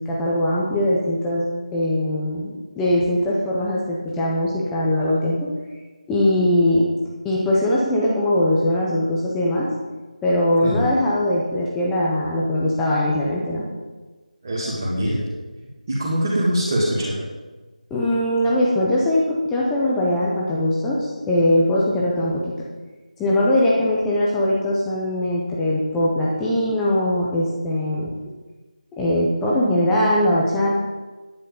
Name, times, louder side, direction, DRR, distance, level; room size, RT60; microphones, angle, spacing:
voice 1, 0.0-5.5 6.1-6.8 7.2-9.7 10.2-13.7 17.9-22.5 23.2-28.1 29.0-30.8, left 1 dB, ahead, -5 dB, 0.4 m, -21 dB
voice 2, 14.4-15.2 15.9-17.2, equal, 20° right, -8 dB, 2.1 m, -23 dB
10.0 x 10.0 x 5.3 m, 1.2 s
figure-of-eight pair, 175°, 4 cm